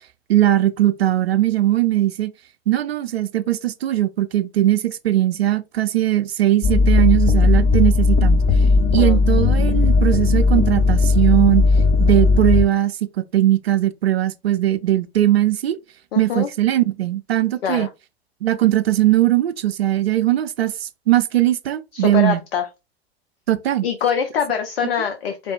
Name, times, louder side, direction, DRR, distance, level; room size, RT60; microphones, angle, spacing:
voice 1, 0.3-2.3 2.7-8.4 8.9-11.6 12.0-15.8 16.2-17.9 18.4-22.4 23.5-23.9, right 14 dB, 75° right, 0.6 m, -19 dB
sound 1, 6.6-12.7, left 3 dB, 35° left, 0.7 m, -16 dB
voice 2, 16.1-16.5 17.6-17.9 21.9-22.7 23.8-25.5, left 7 dB, 70° left, 0.8 m, -24 dB
4.2 x 3.4 x 2.5 m
figure-of-eight pair, 90°, 31 cm